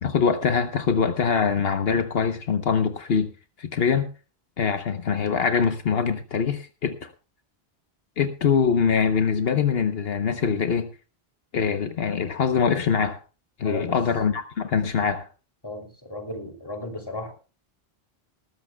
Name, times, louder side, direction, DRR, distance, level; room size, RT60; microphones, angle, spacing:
voice 1, 0.0-3.3 3.6-4.1 4.6-7.1 8.2-10.9 11.5-13.2 13.6-15.3, left 6 dB, 70° left, 1.2 m, -23 dB
voice 2, 15.6-17.3, left 1 dB, 25° left, 3.0 m, -34 dB
19.0 x 14.5 x 2.3 m
omnidirectional pair, 1.0 m